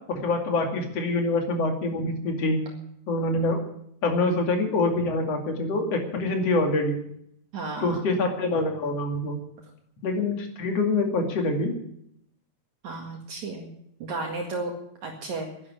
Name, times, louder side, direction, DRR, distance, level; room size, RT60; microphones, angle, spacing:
voice 1, 0.1-2.6 3.1-3.6 4.0-7.0 7.8-9.4 10.0-11.8, left 2 dB, 50° left, 3 dB, 3.3 m, -25 dB
voice 2, 7.5-8.0 12.8-13.7 14.0-14.7 15.0-15.5, right 3 dB, 60° right, 1 dB, 3.1 m, -33 dB
11.5 x 11.0 x 9.7 m, 0.73 s
omnidirectional pair, 4.0 m